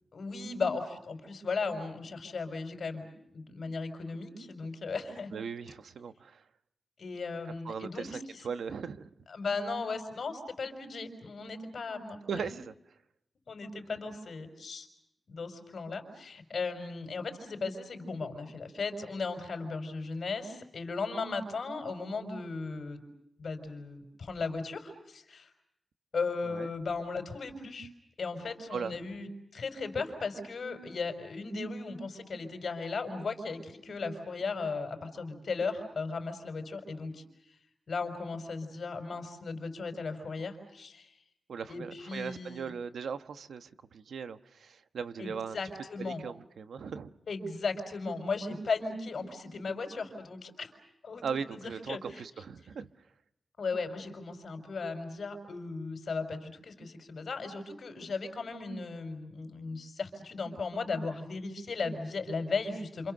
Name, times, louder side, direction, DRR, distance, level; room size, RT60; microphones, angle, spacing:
voice 1, 0.1-5.3 7.0-8.4 9.3-12.5 13.5-14.9 15.3-23.0 23.4-25.5 26.1-27.9 28.2-37.2 37.9-41.1 41.7-42.7 45.2-46.2 47.3-50.7 51.0-51.2 51.5-51.6 51.9-52.2 53.6-63.1, left 4 dB, 55° left, 5.1 m, -36 dB
voice 2, 5.3-6.4 7.6-8.2 8.4-9.1 12.3-12.7 26.4-26.7 28.7-29.1 41.5-45.6 46.0-47.1 51.2-52.9, right 6 dB, 90° right, 1.2 m, -38 dB
29.0 x 27.5 x 6.6 m
wide cardioid pair, 150°, 0 cm